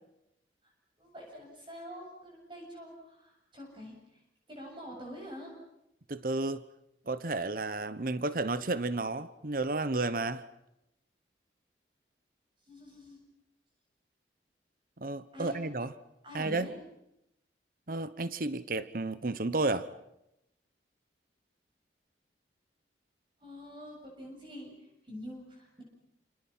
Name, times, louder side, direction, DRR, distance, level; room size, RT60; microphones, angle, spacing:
voice 1, 1.0-3.9 4.5-5.5 12.7-13.2 15.3-15.6 16.2-16.7 23.4-24.7 25.0-25.8, equal, 30° right, 7.5 m, -46 dB
voice 2, 6.1-6.7 7.1-10.4 15.0-15.9 16.3-16.7 17.9-19.9, right 2 dB, 50° right, 1.0 m, -32 dB
29.5 x 28.5 x 5.7 m
head